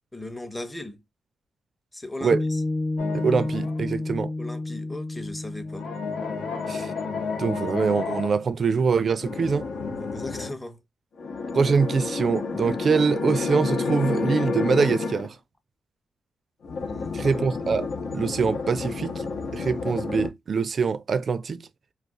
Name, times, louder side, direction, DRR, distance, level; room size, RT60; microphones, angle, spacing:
voice 1, 0.1-1.0 1.9-2.6 4.4-5.9 10.0-10.8 16.8-17.4, left 1 dB, 15° left, 0.7 m, -37 dB
Piano, 2.3-9.0, left 2 dB, 35° left, 0.3 m, -32 dB
sound 1, 3.0-3.9 5.7-8.3 9.2-10.5 11.2-15.3 16.6-20.3, left 4 dB, 75° left, 0.9 m, -30 dB
voice 2, 3.1-4.3 6.7-6.9 7.4-9.7 11.5-15.4 17.1-17.9 18.1-21.7, right 5 dB, 55° right, 0.4 m, -24 dB
2.4 x 2.4 x 3.5 m
cardioid pair, 70°, 0 cm